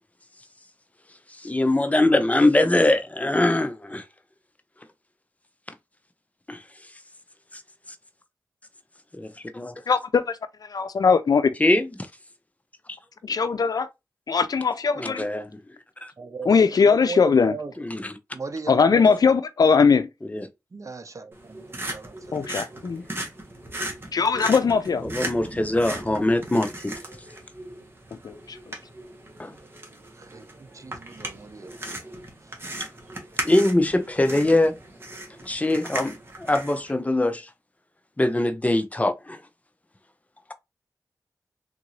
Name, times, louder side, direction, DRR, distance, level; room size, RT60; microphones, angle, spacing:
voice 1, 1.3-4.0 6.5-6.6 7.5-7.6 9.1-9.7 11.6-12.1 12.9-13.0 15.0-15.5 16.0-16.1 17.8-18.2 20.2-20.5 25.0-26.9 29.4-29.6 32.8-32.9 33.4-34.7 35.4-37.5 38.2-39.4, left 1 dB, 20° left, 0.6 m, -22 dB
voice 2, 9.9-10.4 10.7-11.5 13.2-13.9 14.3-15.3 16.5-17.5 18.7-20.1 22.3-23.0 24.1-25.0 28.2-28.6, left 5 dB, 70° left, 0.4 m, -20 dB
voice 3, 16.2-17.7 18.3-19.2 20.7-22.4 25.9-26.2 30.1-31.8 32.4-32.6 34.3-34.6, right 4 dB, 50° right, 0.7 m, -38 dB
sound 1, 21.3-36.9, right 1 dB, 35° right, 1.3 m, -37 dB
3.6 x 2.6 x 3.1 m
cardioid pair, 55°, 7 cm